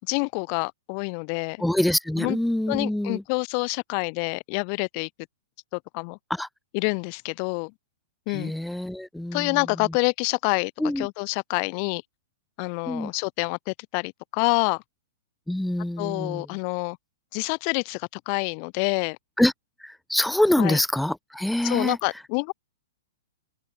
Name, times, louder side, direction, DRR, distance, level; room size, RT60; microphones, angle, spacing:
voice 1, 0.1-1.6 2.2-2.4 2.7-5.1 5.9-6.2 6.7-7.7 8.3-8.5 9.3-10.7 11.0-12.0 12.6-14.8 16.0-17.0 17.3-19.2 20.6-20.8 21.6-22.5, left 40 dB or more, 45° left, 1.6 m, -27 dB
voice 2, 1.6-3.2 6.3-6.5 8.3-10.0 10.8-11.1 12.9-13.1 15.5-16.5 19.4-19.5 19.8-22.0, left 1 dB, ahead, 3.0 m, -25 dB
hypercardioid pair, 115°, 0 cm